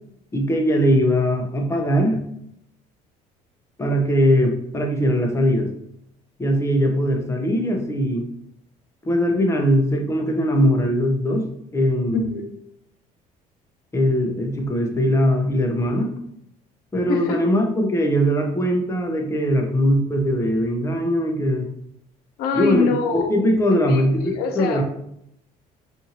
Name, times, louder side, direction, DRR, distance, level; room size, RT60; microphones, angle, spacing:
voice 1, 0.3-2.2 3.8-5.7 6.4-8.3 9.0-12.3 13.9-16.1 16.9-21.6 22.5-24.8, equal, 15° left, 2 dB, 0.6 m, -20 dB
voice 2, 12.1-12.5 17.1-17.4 22.4-23.4 23.9-24.8, left 5 dB, 75° left, 5 dB, 0.6 m, -24 dB
2.6 x 2.5 x 2.8 m, 0.75 s
supercardioid pair, 95°, 16 cm